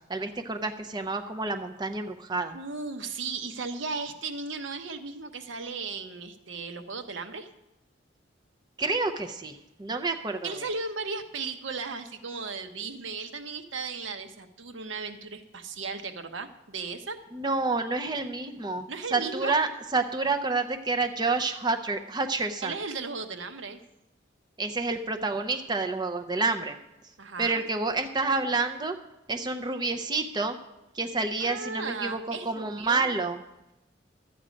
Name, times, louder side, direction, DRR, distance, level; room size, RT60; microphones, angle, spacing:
voice 1, 0.1-2.6 8.8-10.7 17.3-22.7 24.6-26.8 27.4-29.0 29.3-30.6 30.9-33.4, right 3 dB, 25° right, 6 dB, 0.6 m, -29 dB
voice 2, 2.5-7.5 10.4-17.2 18.9-19.6 22.6-23.8 27.2-27.6 31.4-33.1, right 4 dB, 85° right, 7 dB, 0.9 m, -36 dB
12.5 x 8.7 x 5.1 m, 0.93 s
head